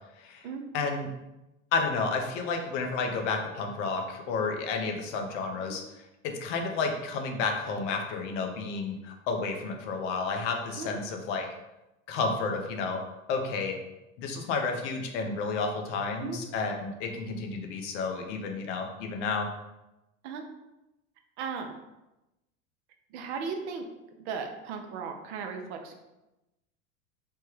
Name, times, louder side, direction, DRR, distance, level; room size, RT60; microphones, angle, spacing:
voice 1, 0.7-1.1 1.7-5.8 6.2-11.5 12.1-13.0 13.3-13.8 14.2-19.5, left 4 dB, 65° left, 3 dB, 0.7 m, -31 dB
voice 2, 21.4-21.7 23.1-23.9 24.2-25.9, right 5 dB, 60° right, 4 dB, 0.6 m, -36 dB
3.2 x 2.2 x 3.2 m, 0.96 s
hypercardioid pair, 85°, 40 cm